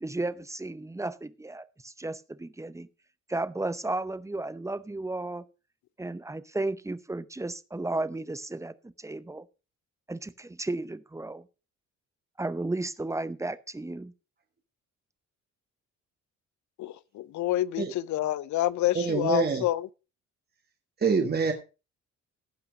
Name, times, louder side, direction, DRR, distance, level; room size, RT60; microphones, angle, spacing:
voice 1, 0.0-2.9 3.3-5.4 6.0-9.4 10.1-11.4 12.4-14.1, right 2 dB, 10° right, 0.7 m, -34 dB
voice 2, 16.8-19.9, left 14 dB, 70° left, 0.6 m, -28 dB
voice 3, 18.9-19.6 21.0-21.5, right 5 dB, 30° right, 1.6 m, -25 dB
15.5 x 5.7 x 5.0 m
cardioid pair, 90°, 30 cm